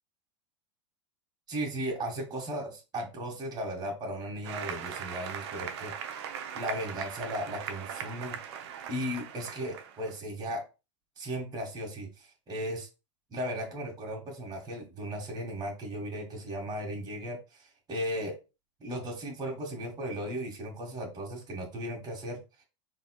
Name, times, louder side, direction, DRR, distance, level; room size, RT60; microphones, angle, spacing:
voice 1, 1.5-5.9 6.6-8.4 8.9-10.6 11.2-12.9 13.3-18.4 18.8-22.4, equal, 25° right, 0 dB, 1.7 m, -36 dB
Applause, 4.4-10.1, right 8 dB, 60° right, 0.6 m, -39 dB
4.1 x 3.3 x 2.3 m, 0.29 s
hypercardioid pair, 90°, 16 cm